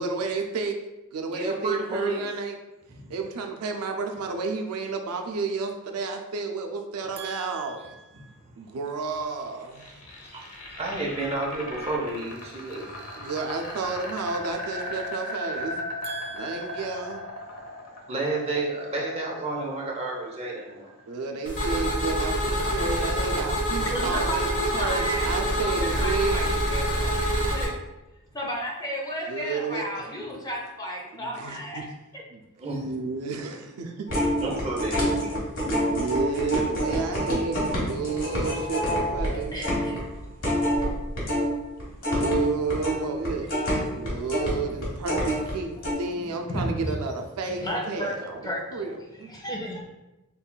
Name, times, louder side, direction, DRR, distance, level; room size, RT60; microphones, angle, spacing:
voice 1, 0.0-0.7 1.1-2.5 3.1-10.0 13.2-17.2 21.1-24.5 24.7-26.5 29.3-30.1 31.1-31.8 32.3-32.4 32.7-34.1 35.6-39.6 42.0-43.5 43.8-49.3, right 4 dB, 85° right, 4 dB, 0.4 m, -31 dB
voice 2, 1.3-2.2 2.9-3.1 10.2-10.5 10.8-12.8 18.1-20.9 32.6-32.9 34.4-35.4 35.6-35.8 40.1-40.2 41.9-42.0, right 2 dB, 25° right, -3 dB, 0.7 m, -31 dB
sound 1, 9.4-21.5, left 1 dB, 85° left, 0.8 m, -37 dB
sound 2, 21.5-27.7, equal, 35° left, 1.2 m, -26 dB
voice 3, 23.8-27.2 27.5-27.7 28.3-31.9 39.3-40.2 40.8-41.0 45.1-45.2 45.7-45.8 46.1-46.9 47.4-48.1 48.4-48.9 49.2-49.9, equal, 15° left, -2 dB, 0.6 m, -33 dB
sound 3, 34.1-41.5 41.8-45.5 45.8-45.9, equal, 65° left, 1.3 m, -27 dB
5.4 x 2.3 x 2.2 m, 1.0 s
head